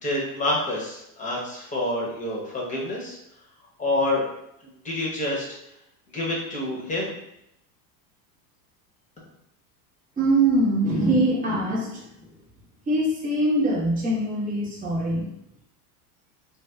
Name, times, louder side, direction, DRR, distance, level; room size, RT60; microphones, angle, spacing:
voice 1, 0.0-3.2 3.8-4.3 4.8-5.4 6.1-7.1, left 1 dB, 15° left, -4 dB, 1.0 m, -27 dB
voice 2, 10.2-12.3 12.9-15.3, right 1 dB, 15° right, -5 dB, 0.9 m, -23 dB
2.6 x 2.2 x 3.3 m, 0.80 s
supercardioid pair, 110°, 47 cm